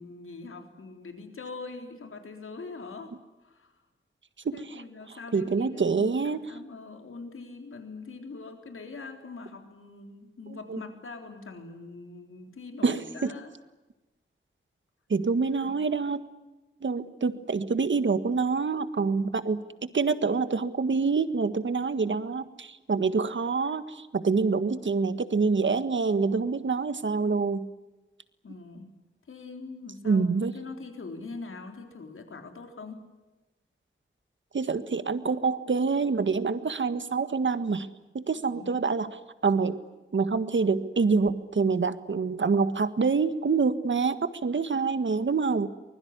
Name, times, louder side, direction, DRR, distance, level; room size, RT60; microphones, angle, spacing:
voice 1, 0.0-3.8 4.5-13.5 15.5-15.9 19.3-19.5 28.4-28.9 29.3-33.1 38.3-38.8, left 3 dB, 85° left, 5 dB, 3.7 m, -43 dB
voice 2, 4.4-4.8 5.3-6.5 10.7-10.8 12.8-13.3 15.1-16.2 16.8-19.6 19.9-27.7 30.0-30.5 34.5-37.9 38.1-39.1 39.4-39.8 40.1-45.7, right 4 dB, 65° right, 11 dB, 1.7 m, -26 dB
24.5 x 21.5 x 9.7 m, 1.1 s
wide cardioid pair, 85°, 21 cm